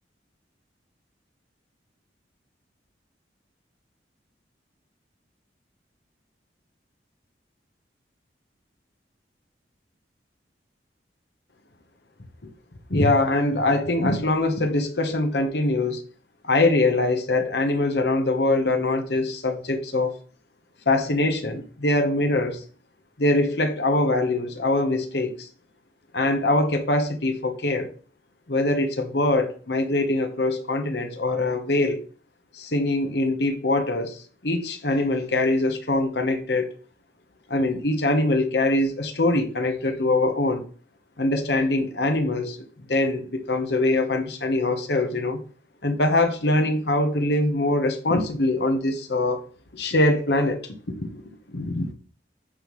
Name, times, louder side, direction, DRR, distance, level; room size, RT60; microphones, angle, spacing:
voice 1, 12.9-16.0 16.4-20.2 20.9-22.6 23.2-25.5 26.1-27.9 28.5-32.0 32.5-36.7 37.5-40.6 41.2-42.6 42.9-45.4 45.8-49.4 49.7-51.2 51.5-51.9, left 2 dB, 70° left, 1.1 m, -23 dB
10.0 x 5.5 x 3.2 m
head